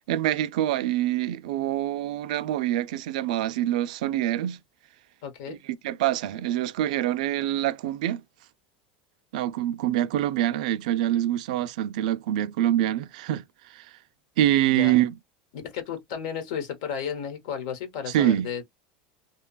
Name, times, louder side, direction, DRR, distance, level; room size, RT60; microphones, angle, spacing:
voice 1, 0.1-4.6 5.5-8.2 9.3-13.4 13.7-13.9 14.4-15.1 18.1-18.5, right 13 dB, 85° right, 0.4 m, -25 dB
voice 2, 5.2-5.6 14.7-15.0 15.6-18.6, left 7 dB, 70° left, 1.1 m, -33 dB
2.8 x 2.3 x 2.3 m
supercardioid pair, 160°, 4 cm